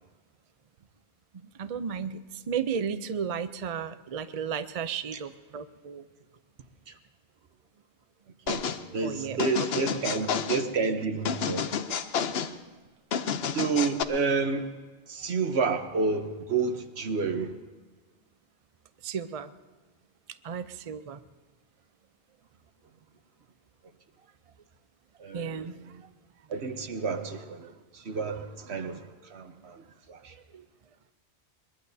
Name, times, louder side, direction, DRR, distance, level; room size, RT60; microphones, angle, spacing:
voice 1, 1.6-6.0 9.0-9.4 9.9-10.1 19.0-19.5 20.4-21.2 25.3-25.7 30.5-30.6, right 7 dB, 45° right, 11 dB, 0.5 m, -34 dB
sound 1, 8.5-8.8 9.4-10.7 11.2-12.5 13.1-14.0, left 7 dB, 65° left, 0.9 m, -30 dB
voice 2, 8.9-11.7 13.5-14.7 15.1-17.5 25.2-26.0 26.5-27.6 28.0-29.0 29.3-29.8 30.1-30.3, right 4 dB, 70° right, 8 dB, 1.3 m, -29 dB
22.0 x 21.5 x 2.8 m, 1.3 s
omnidirectional pair, 1.2 m